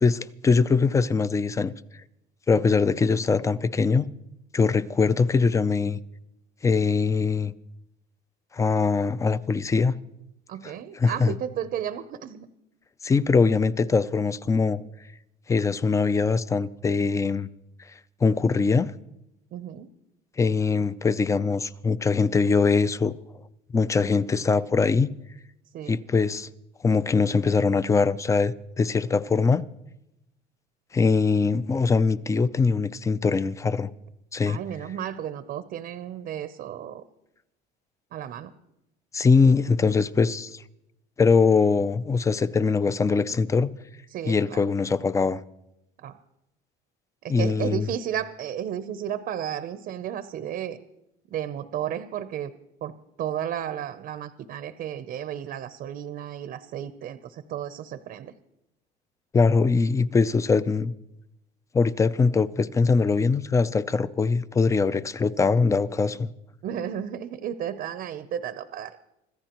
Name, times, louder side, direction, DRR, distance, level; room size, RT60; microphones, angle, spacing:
voice 1, 0.0-1.7 2.5-4.1 4.5-6.0 6.6-7.5 8.5-10.0 11.0-11.3 13.0-14.8 15.5-17.5 18.2-18.9 20.4-23.1 23.7-25.1 25.9-26.5 26.8-29.6 30.9-33.9 34.3-34.6 39.1-40.6 41.2-43.7 44.3-45.4 47.3-47.9 59.3-60.9 61.7-66.3, left 4 dB, 15° left, 0.4 m, -22 dB
voice 2, 10.5-12.5 19.5-19.9 25.7-26.0 34.5-37.0 38.1-38.5 44.1-44.6 46.0-46.2 47.2-50.8 51.3-52.5 52.8-52.9 53.2-58.3 66.6-69.1, right 10 dB, 50° right, 0.7 m, -33 dB
25.5 x 14.0 x 3.0 m
cardioid pair, 130°, 19 cm